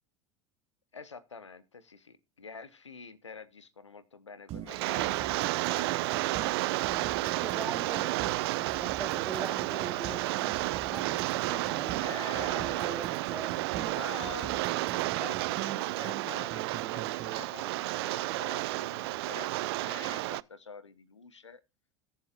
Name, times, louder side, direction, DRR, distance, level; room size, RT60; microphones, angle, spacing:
voice 1, 0.9-6.0 6.2-6.5 12.0-13.0 13.8-21.6, left 5 dB, 85° left, 0.8 m, -47 dB
sound 1, 4.5-17.4, right 11 dB, 45° right, 1.2 m, -42 dB
Rain, 4.7-20.4, right 20 dB, 60° right, 0.5 m, -32 dB
voice 2, 6.8-14.0, right 2 dB, 10° right, 3.0 m, -43 dB
21.5 x 7.4 x 2.4 m
figure-of-eight pair, 75°, 15 cm